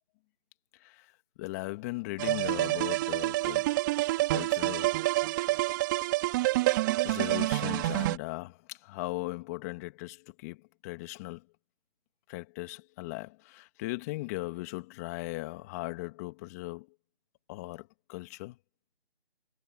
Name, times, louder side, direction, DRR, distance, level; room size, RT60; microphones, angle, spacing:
voice 1, 0.8-1.1 1.4-3.7 4.3-5.0 7.0-11.4 12.3-16.9 17.5-18.6, left 22 dB, 15° left, 2.0 m, -38 dB
sound 1, 2.2-8.2, right 18 dB, 20° right, 2.9 m, -28 dB
figure-of-eight pair, 160°, 32 cm